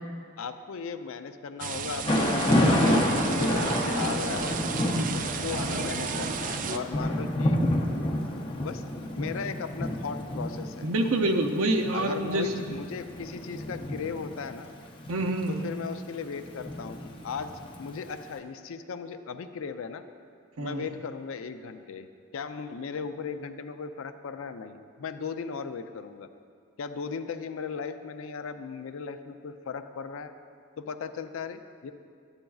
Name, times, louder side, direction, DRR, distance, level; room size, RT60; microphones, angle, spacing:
voice 1, 0.4-4.6 5.1-7.6 8.6-8.8 9.1-10.9 11.9-14.7 15.5-17.0 17.2-20.0 20.6-26.3 26.8-30.3 30.8-31.9, left 5 dB, 70° left, 9 dB, 0.4 m, -37 dB
sound 1, 1.6-6.8, right 6 dB, 40° right, 0.3 m, -33 dB
Thunder / Rain, 2.0-18.1, left 1 dB, 25° left, 0.6 m, -29 dB
voice 2, 10.8-12.6 15.1-15.6 20.6-20.8, right 1 dB, 75° right, 4 dB, 0.6 m, -27 dB
11.5 x 8.7 x 2.3 m, 2.2 s
head